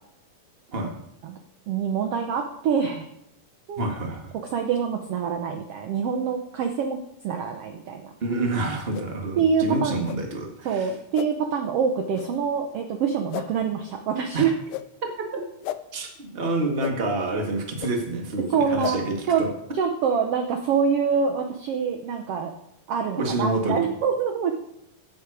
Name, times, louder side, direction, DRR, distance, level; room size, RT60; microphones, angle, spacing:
voice 1, 1.7-3.1 3.7-3.8 4.5-8.1 9.4-10.0 10.6-14.5 18.5-19.4 19.7-22.5 22.9-24.5, right 6 dB, 75° right, 5 dB, 1.4 m, -25 dB
voice 2, 3.8-4.3 8.2-10.9 14.3-14.5 15.3-15.4 15.9-19.5 23.2-23.8, right 2 dB, 25° right, 2 dB, 1.4 m, -28 dB
sound 1, 8.9-9.1 10.0-10.2 11.1-11.3 12.1-12.3 13.3-13.5 14.7-14.9 15.6-15.8 16.8-16.9 17.8-17.9 18.8-19.0, left 14 dB, 85° left, 2.1 m, -32 dB
15.0 x 7.9 x 4.9 m, 0.79 s
omnidirectional pair, 3.8 m